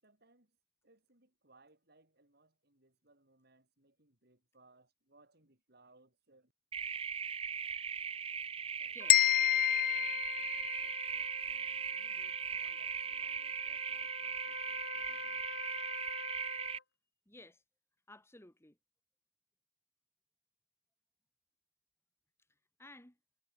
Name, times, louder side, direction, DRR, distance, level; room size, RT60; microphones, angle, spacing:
voice 1, 0.0-0.6 0.8-6.5 8.8-9.0 9.6-15.4, right 2 dB, 60° right, 6.6 m, -67 dB
sound 1, 6.7-16.8, right 6 dB, 30° right, 0.7 m, -39 dB
voice 2, 8.9-9.2 17.3-17.6 18.1-18.8 22.5-23.2, left 2 dB, 15° left, 2.6 m, -56 dB
Trumpet, 9.0-16.8, left 4 dB, 75° left, 4.9 m, -48 dB
sound 2, 9.1-11.1, left 13 dB, 50° left, 0.6 m, -29 dB
head